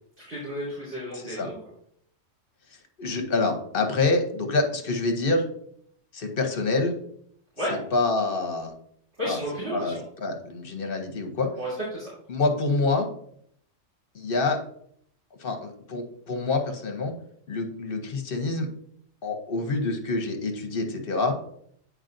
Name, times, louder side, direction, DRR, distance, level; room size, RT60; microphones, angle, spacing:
voice 1, 0.3-1.6 7.6-7.7 9.2-10.0 11.6-12.1, equal, 55° right, -11 dB, 3.2 m, -32 dB
voice 2, 1.1-1.5 3.0-5.4 6.1-6.9 7.7-8.7 9.2-9.4 9.7-9.9 10.2-11.5 12.3-13.1 14.1-14.6 15.4-17.1 17.5-18.7 19.2-21.4, left 3 dB, 50° left, 4 dB, 1.0 m, -26 dB
8.8 x 4.8 x 2.6 m, 0.67 s
omnidirectional pair, 1.3 m